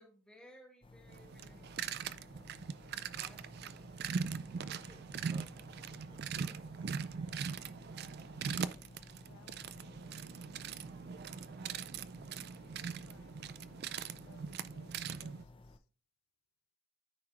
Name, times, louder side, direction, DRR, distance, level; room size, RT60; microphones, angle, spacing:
voice 1, 0.0-2.3 3.0-3.9, equal, 5° left, 1.7 m, -61 dB
sound 1, 0.8-15.8, left 2 dB, 25° left, 0.5 m, -57 dB
sound 2, 1.1-15.4, right 6 dB, 50° right, 0.3 m, -41 dB
voice 2, 4.6-7.3, right 1 dB, 25° right, 0.9 m, -62 dB
voice 3, 9.2-10.4 12.3-13.4 14.0-15.4, left 7 dB, 85° left, 0.4 m, -64 dB
13.0 x 4.7 x 2.4 m
head